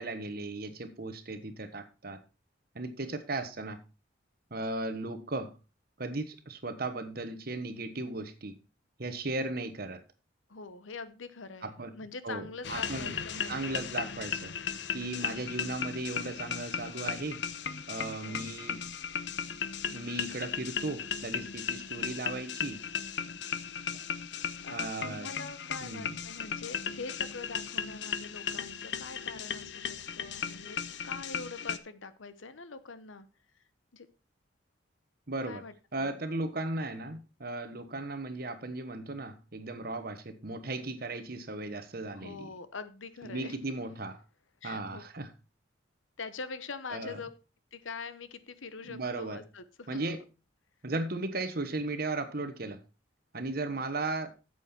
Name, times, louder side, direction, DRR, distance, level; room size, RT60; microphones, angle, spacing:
voice 1, 0.0-2.2 2.7-3.8 4.5-5.5 6.0-8.6 9.0-10.0 11.6-11.9 12.2-13.2 13.5-14.5 14.9-17.4 17.9-18.8 19.9-22.8 24.7-25.3 25.8-26.2 35.3-35.6 35.9-42.5 43.2-44.2 44.6-45.3 46.9-47.2 48.8-49.4 49.9-50.2 50.8-52.8 53.3-54.3, right 2 dB, 50° right, 1.2 m, -36 dB
voice 2, 10.5-14.0 18.2-18.5 21.9-22.3 24.6-33.3 33.9-34.1 35.5-36.2 42.1-43.6 44.6-45.0 46.2-47.3 47.7-50.1 53.6-53.9, left 4 dB, 85° left, 1.0 m, -44 dB
sound 1, 12.6-31.8, left 7 dB, 65° left, 0.7 m, -36 dB
9.2 x 7.6 x 4.3 m
head